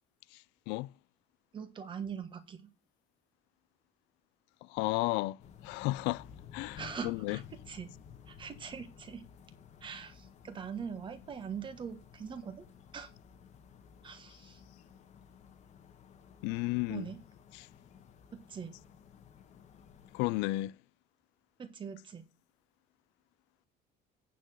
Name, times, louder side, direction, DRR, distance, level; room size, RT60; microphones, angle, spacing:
voice 1, 1.5-2.7 6.8-7.9 8.3-9.2 9.8-12.6 12.9-13.1 14.0-14.6 16.9-17.2 18.5-18.8 21.6-22.2, right 6 dB, 30° right, 1.4 m, -42 dB
voice 2, 4.7-5.4 5.6-6.3 6.5-7.4 16.4-17.1 17.5-17.7 20.1-20.7, left 20 dB, 85° left, 0.4 m, -33 dB
sound 1, 5.4-20.4, left 7 dB, 40° left, 1.3 m, -55 dB
9.2 x 4.5 x 7.6 m
cardioid pair, 160°, 18 cm